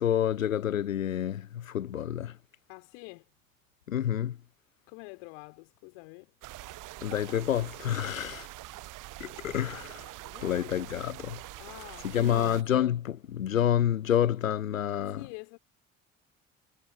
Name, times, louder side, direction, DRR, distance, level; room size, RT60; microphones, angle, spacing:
voice 1, 0.0-2.4 3.9-4.4 7.0-8.5 9.2-10.1 10.4-11.4 12.0-15.2, left 10 dB, 85° left, 0.8 m, -28 dB
voice 2, 2.7-3.3 4.9-6.5 10.2-10.7 11.6-12.5 15.1-15.6, left 40 dB or more, 65° left, 3.8 m, -47 dB
sound 1, 6.4-12.6, right 18 dB, 50° right, 1.0 m, -44 dB
figure-of-eight pair, 50°, 39 cm